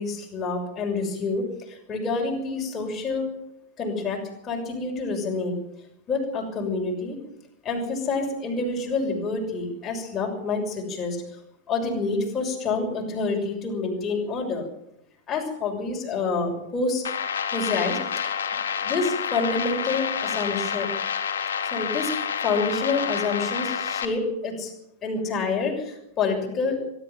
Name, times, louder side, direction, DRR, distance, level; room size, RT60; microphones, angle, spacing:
voice 1, 0.0-3.3 3.8-5.5 6.1-7.2 7.6-11.2 11.7-14.7 15.3-17.0 17.5-18.3 18.8-20.9 21.7-24.7 25.0-26.8, left 3 dB, 25° left, 1 dB, 6.5 m, -27 dB
sound 1, 17.0-24.0, left 7 dB, 65° left, 2.5 m, -28 dB
22.5 x 12.5 x 9.3 m, 0.81 s
figure-of-eight pair, 90°, 0 cm